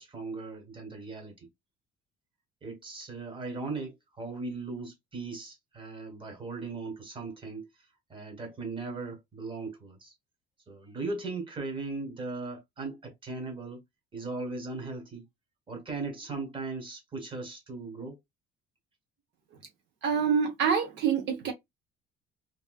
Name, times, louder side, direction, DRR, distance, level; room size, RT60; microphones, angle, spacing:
voice 1, 0.0-1.5 2.6-7.7 8.1-10.1 10.7-13.8 14.1-15.2 15.7-18.2, right 3 dB, 25° right, 1.6 m, -38 dB
voice 2, 20.0-21.5, right 6 dB, 65° right, 0.9 m, -26 dB
3.5 x 2.8 x 2.4 m
cardioid pair, 135°, 20 cm